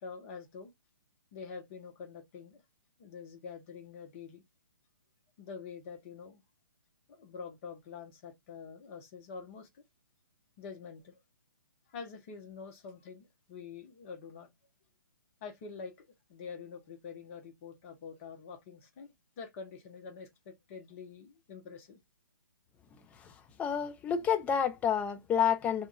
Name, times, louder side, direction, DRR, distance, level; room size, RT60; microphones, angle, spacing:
voice 1, 0.0-0.7 1.3-2.6 3.0-4.4 5.4-6.4 7.1-9.8 10.6-11.2 11.9-14.5 15.4-22.0, left 5 dB, 40° left, 0.9 m, -46 dB
voice 2, 23.6-25.9, left 8 dB, 10° left, 0.3 m, -29 dB
2.8 x 2.4 x 2.4 m
hypercardioid pair, 135°, 11 cm